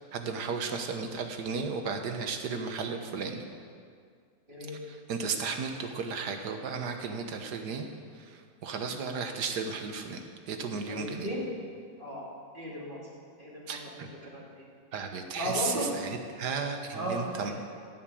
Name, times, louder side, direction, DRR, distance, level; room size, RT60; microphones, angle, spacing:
voice 1, 0.0-3.4 4.9-7.9 8.1-11.3 13.7-14.1 14.9-17.5, right 5 dB, 90° right, 5 dB, 1.7 m, -34 dB
voice 2, 10.9-11.5 12.0-12.3 12.5-13.0 13.4-13.8 14.2-14.6 15.3-15.9 16.9-17.5, equal, 30° right, -5 dB, 2.8 m, -35 dB
16.0 x 5.9 x 8.7 m, 2.2 s
omnidirectional pair, 1.7 m